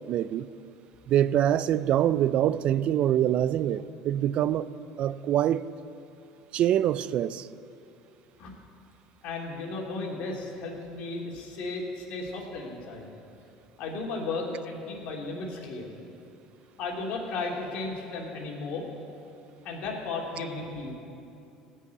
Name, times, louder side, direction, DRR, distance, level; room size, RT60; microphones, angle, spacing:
voice 1, 0.1-0.5 1.1-4.7 5.0-5.6 6.5-7.5, right 11 dB, 55° right, 0.4 m, -25 dB
voice 2, 9.2-13.1 13.8-15.9 16.8-18.9 19.6-20.9, left 3 dB, 65° left, 2.5 m, -35 dB
16.5 x 5.6 x 8.1 m
supercardioid pair, 90°, 2 cm